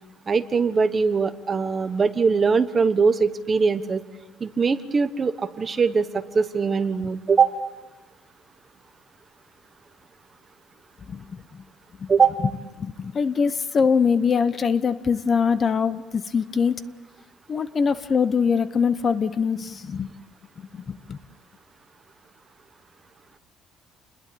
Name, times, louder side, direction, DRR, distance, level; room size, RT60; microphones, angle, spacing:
voice 1, 0.3-4.0 4.4-7.6 12.1-12.4, right 5 dB, 25° right, 11 dB, 1.2 m, -21 dB
voice 2, 11.1-11.6 12.0-12.1 12.8-16.8 17.5-20.1 20.6-21.2, left 6 dB, 30° left, 13 dB, 1.0 m, -23 dB
29.5 x 21.5 x 8.7 m, 1.2 s
cardioid pair, 155°, 0 cm